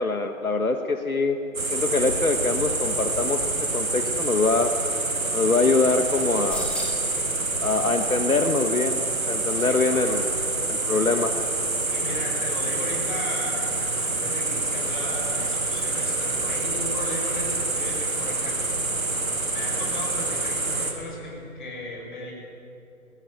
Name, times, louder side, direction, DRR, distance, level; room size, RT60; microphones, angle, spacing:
voice 1, 0.0-1.4 1.7-3.4 3.7-4.7 5.3-6.7 7.6-9.0 9.3-10.2 10.7-11.4, left 3 dB, 80° left, 6 dB, 1.6 m, -23 dB
sound 1, 1.5-20.9, right 3 dB, 75° right, 3.7 m, -27 dB
sound 2, 6.5-7.2 8.7-10.4 10.7-10.8, left 1 dB, ahead, 2.6 m, -39 dB
voice 2, 9.5-10.3 11.9-18.8 19.5-22.3, left 1 dB, 35° left, -2 dB, 7.4 m, -36 dB
21.0 x 18.0 x 9.2 m, 2.8 s
figure-of-eight pair, 150°, 42 cm